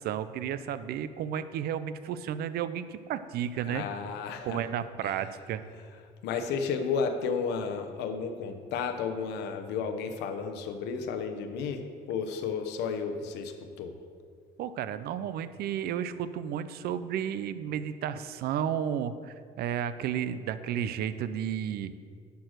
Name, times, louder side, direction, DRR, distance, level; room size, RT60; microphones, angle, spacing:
voice 1, 0.0-3.8 4.4-5.6 14.6-21.9, right 9 dB, 70° right, 13 dB, 0.5 m, -32 dB
voice 2, 3.6-4.7 5.0-5.2 6.2-13.9, left 5 dB, 90° left, 6 dB, 0.9 m, -33 dB
10.5 x 4.6 x 6.4 m, 2.1 s
cardioid pair, 110°, 17 cm